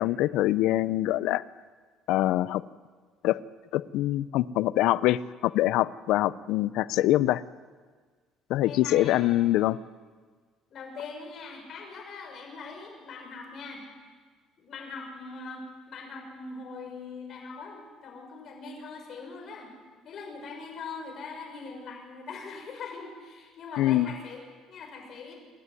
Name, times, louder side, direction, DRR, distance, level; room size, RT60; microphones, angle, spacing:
voice 1, 0.0-1.4 2.1-2.6 3.2-3.4 3.7-7.4 8.5-9.8 23.8-24.1, left 15 dB, 75° left, 18 dB, 0.5 m, -24 dB
voice 2, 8.6-9.4 10.7-13.8 14.6-19.7 20.0-24.4 24.7-25.3, left 4 dB, 50° left, 2 dB, 6.4 m, -41 dB
27.5 x 11.0 x 9.7 m, 1.5 s
cardioid pair, 110°, 0 cm